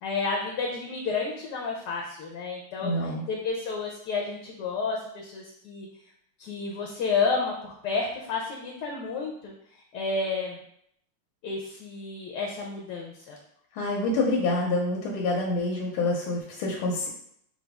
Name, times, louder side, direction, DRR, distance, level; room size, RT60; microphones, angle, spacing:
voice 1, 0.0-5.9 6.4-9.5 9.9-10.6 11.4-13.3, left 4 dB, 70° left, 0 dB, 1.1 m, -31 dB
voice 2, 2.8-3.2 13.7-17.1, left 2 dB, 85° left, -2 dB, 1.6 m, -27 dB
4.9 x 2.3 x 3.4 m, 0.71 s
omnidirectional pair, 2.2 m